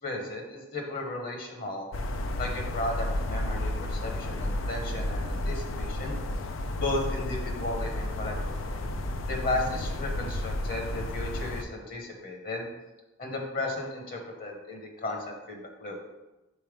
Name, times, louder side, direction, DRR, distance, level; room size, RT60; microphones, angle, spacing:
voice 1, 0.0-1.9 2.4-6.2 6.8-8.8 9.2-12.6 13.2-16.0, left 2 dB, 45° left, 2 dB, 1.0 m, -34 dB
sound 1, 1.9-11.6, left 1 dB, 85° left, 0.5 m, -32 dB
5.4 x 4.2 x 5.0 m, 1.0 s
head